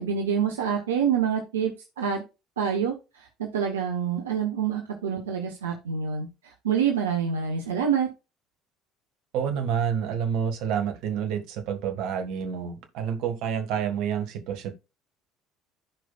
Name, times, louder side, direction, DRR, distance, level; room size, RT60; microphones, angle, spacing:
voice 1, 0.0-2.2 2.6-8.1, right 7 dB, 80° right, 1.1 m, -27 dB
voice 2, 9.3-14.7, right 8 dB, 65° right, 1.6 m, -28 dB
15.0 x 5.1 x 2.4 m
hypercardioid pair, 60°, 0 cm